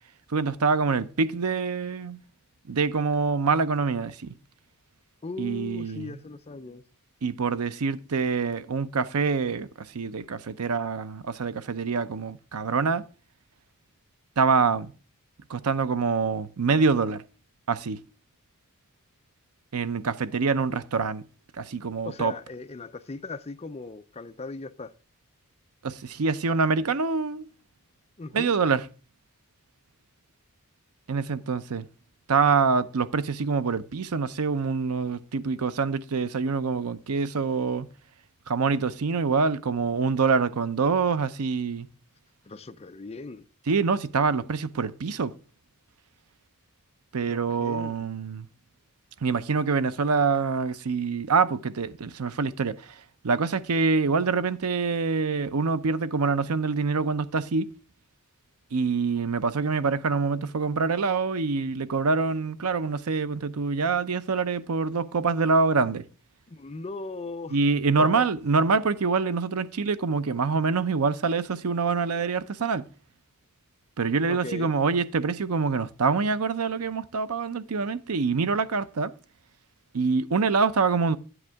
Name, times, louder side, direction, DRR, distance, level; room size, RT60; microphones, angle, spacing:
voice 1, 0.3-2.2 2.7-4.3 5.4-6.2 7.2-13.0 14.4-14.9 15.5-17.2 17.7-18.0 19.7-21.2 21.5-22.3 25.8-27.5 28.3-28.9 31.1-31.9 32.3-37.9 38.5-41.9 43.7-45.3 47.1-48.5 49.2-57.7 58.7-66.0 67.5-72.9 74.0-79.1 79.9-81.2, right 4 dB, 90° right, 0.6 m, -25 dB
voice 2, 5.2-6.8 22.0-24.9 28.2-28.5 42.4-43.5 47.3-48.1 66.5-67.6 68.0-68.3 74.3-74.7, left 3 dB, 30° left, 0.5 m, -38 dB
9.8 x 8.0 x 3.4 m
head